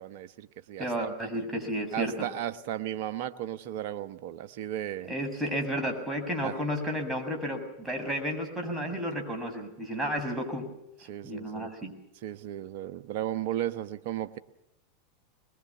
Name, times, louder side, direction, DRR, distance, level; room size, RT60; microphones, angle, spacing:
voice 1, 0.0-1.3 1.9-5.1 6.4-6.6 11.1-11.7 12.2-14.4, right 12 dB, 60° right, 10 dB, 1.2 m, -35 dB
voice 2, 0.8-2.3 5.1-10.7 11.2-11.9, equal, 10° right, 3 dB, 6.7 m, -32 dB
22.5 x 21.5 x 7.2 m, 0.85 s
hypercardioid pair, 95°, 0 cm